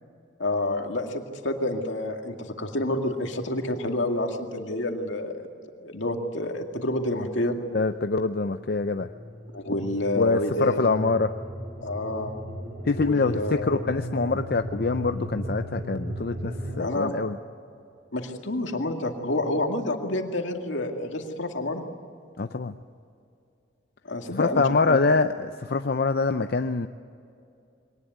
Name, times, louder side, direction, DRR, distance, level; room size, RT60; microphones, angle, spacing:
voice 1, 0.4-5.3 5.8-7.6 9.5-10.9 11.8-12.3 13.0-13.7 16.8-17.1 18.1-21.8 24.1-25.0, left 1 dB, 80° left, 3 dB, 2.2 m, -28 dB
voice 2, 7.7-9.1 10.2-11.3 12.9-17.4 22.4-22.7 24.3-26.9, left 4 dB, 55° left, 8 dB, 0.6 m, -25 dB
sound 1, 8.6-16.8, equal, 50° right, 3.3 m, -36 dB
22.5 x 19.0 x 9.4 m, 2.5 s
head